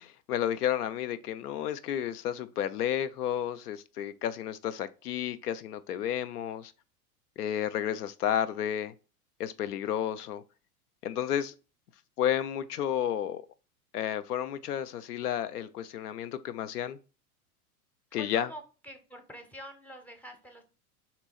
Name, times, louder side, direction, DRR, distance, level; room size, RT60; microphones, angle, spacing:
voice 1, 0.0-6.7 7.4-8.9 9.4-10.4 11.0-11.5 12.2-13.4 13.9-17.0 18.1-18.5, left 10 dB, 80° left, 0.6 m, -32 dB
voice 2, 18.2-20.6, equal, 5° left, 0.6 m, -46 dB
3.4 x 3.0 x 4.1 m
hypercardioid pair, 100°, 45 cm